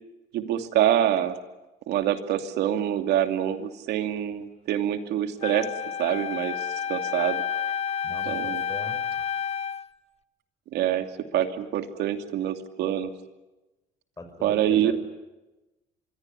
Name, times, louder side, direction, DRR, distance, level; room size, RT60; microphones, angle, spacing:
voice 1, 0.3-1.4 1.9-5.7 6.0-6.5 6.9-7.4 8.3-8.6 10.7-11.1 11.3-13.1 14.4-14.9, right 11 dB, 80° right, 6 dB, 2.7 m, -25 dB
Wind instrument woodwind instrument, 5.4-9.9, left 8 dB, 40° left, 1.0 m, -30 dB
voice 2, 8.0-9.0 14.2-14.9, left 2 dB, 20° left, 6 dB, 5.8 m, -40 dB
25.5 x 23.5 x 10.0 m, 1.1 s
cardioid pair, 110°, 17 cm